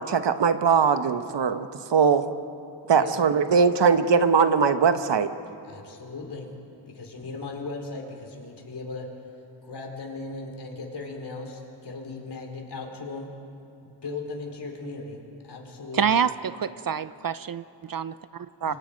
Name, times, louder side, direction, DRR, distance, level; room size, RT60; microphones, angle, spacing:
voice 1, 0.0-2.3 2.9-5.3, right 6 dB, 65° right, 10 dB, 1.3 m, -21 dB
voice 2, 5.6-6.5 6.9-9.1 9.6-13.3 13.8-16.2 18.7-18.8, left 3 dB, 60° left, 2 dB, 4.6 m, -37 dB
voice 3, 15.9-18.7, right 7 dB, 45° right, 14 dB, 0.7 m, -27 dB
29.5 x 24.5 x 5.3 m, 2.8 s
cardioid pair, 75°, 46 cm